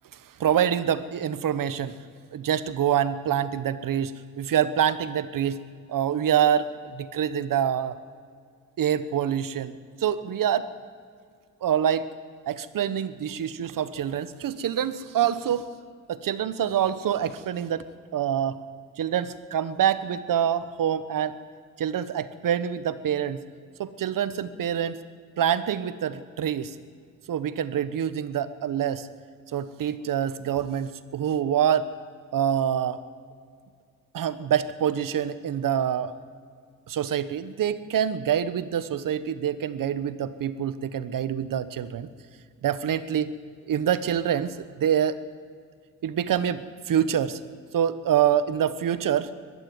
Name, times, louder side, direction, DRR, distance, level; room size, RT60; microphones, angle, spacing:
voice 1, 0.4-2.0 2.3-5.6 5.9-8.0 8.8-10.7 11.6-12.0 12.5-15.7 16.1-17.8 18.1-18.6 19.0-21.4 21.8-23.4 23.8-25.0 25.4-26.7 27.3-29.1 29.5-31.9 32.3-33.0 34.1-36.1 36.9-42.1 42.6-43.3 43.7-45.2 46.0-47.4 47.7-49.3, right 9 dB, 85° right, 14 dB, 1.1 m, -26 dB
21.5 x 12.5 x 9.5 m, 2.1 s
wide cardioid pair, 130°, 32 cm